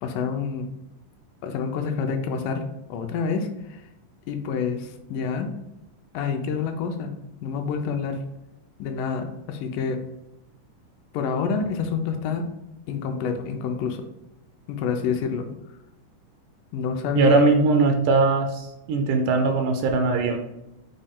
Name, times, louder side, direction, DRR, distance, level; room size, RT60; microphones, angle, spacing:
voice 1, 0.0-0.7 1.4-2.6 2.9-3.8 4.3-5.5 6.1-7.1 7.4-8.2 8.8-10.0 11.1-12.5 12.9-14.0 14.7-15.5 16.7-17.5, left 6 dB, 85° left, 5 dB, 2.2 m, -27 dB
voice 2, 17.2-20.4, right 3 dB, 80° right, 4 dB, 2.0 m, -20 dB
6.3 x 2.2 x 3.5 m, 0.89 s
omnidirectional pair, 3.8 m